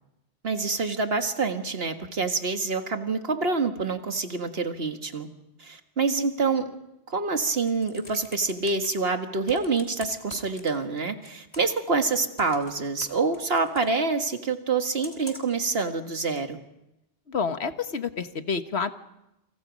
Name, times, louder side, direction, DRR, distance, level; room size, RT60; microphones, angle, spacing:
voice 1, 0.4-5.3 5.6-6.7 7.1-16.6, right 4 dB, 70° right, 6 dB, 1.9 m, -26 dB
Computer keyboard, 7.5-8.9 9.5-11.0 11.2-11.8 12.4-13.9 15.0-15.6 16.4-16.5, left 1 dB, 25° left, 3.7 m, -45 dB
voice 2, 17.3-18.9, left 5 dB, 85° left, 9 dB, 1.5 m, -29 dB
29.0 x 27.0 x 5.2 m, 0.89 s
omnidirectional pair, 1.1 m